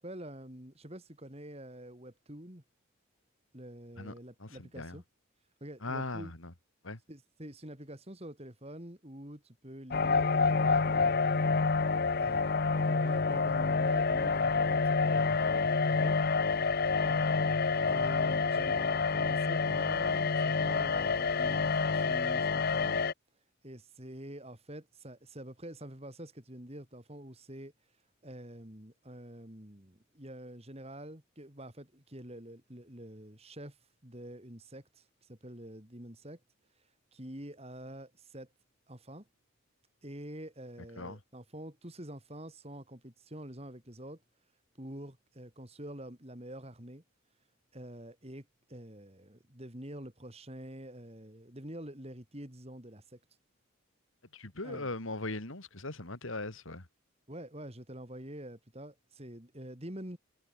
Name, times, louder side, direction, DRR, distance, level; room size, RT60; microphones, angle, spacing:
voice 1, 0.0-2.6 3.5-5.0 5.6-6.3 7.1-11.5 12.2-16.2 17.0-23.0 23.6-27.7 28.2-33.8 34.0-36.4 37.1-38.5 38.9-39.3 40.0-44.2 44.8-47.0 47.7-53.2 54.6-54.9 57.3-60.2, right 1 dB, 30° right, 3.2 m, -47 dB
voice 2, 4.4-5.0 5.8-6.5 6.8-7.0 41.0-41.2 54.3-56.9, left 2 dB, 70° left, 3.0 m, -39 dB
sound 1, 9.9-23.1, left 4 dB, 45° left, 0.7 m, -28 dB
head